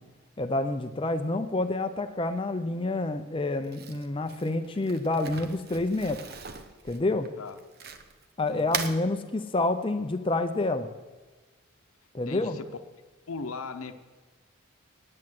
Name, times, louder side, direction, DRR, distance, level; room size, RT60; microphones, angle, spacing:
voice 1, 0.4-6.2 6.8-7.3 8.4-10.9 12.1-12.6, left 2 dB, 25° left, 8 dB, 0.5 m, -28 dB
Crumpling crinkling, 3.6-8.2 8.6-9.0, right 6 dB, 45° right, 0.8 m, -38 dB
voice 2, 8.5-8.9 12.3-12.7 13.3-14.0, left 4 dB, 90° left, 9 dB, 0.8 m, -38 dB
9.7 x 8.6 x 7.7 m, 1.3 s
head